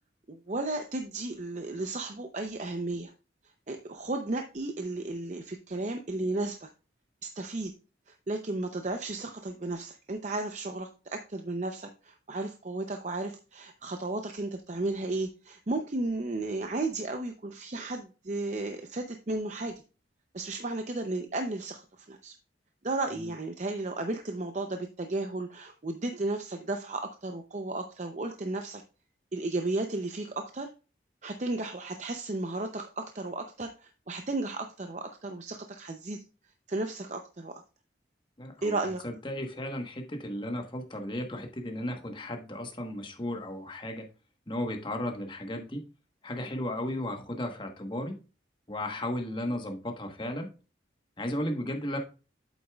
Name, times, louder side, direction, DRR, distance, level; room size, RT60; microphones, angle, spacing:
voice 1, 0.3-3.1 3.7-6.7 7.2-7.7 8.1-19.8 20.3-22.4 22.8-28.8 29.3-30.7 31.2-36.2 36.7-37.6 38.6-39.0, right 2 dB, 40° right, 5 dB, 0.6 m, -34 dB
voice 2, 38.4-44.1 44.5-45.8 46.2-48.2 48.7-50.5 51.2-52.0, left 1 dB, 25° left, 3 dB, 1.2 m, -35 dB
8.2 x 8.0 x 2.3 m, 0.34 s
head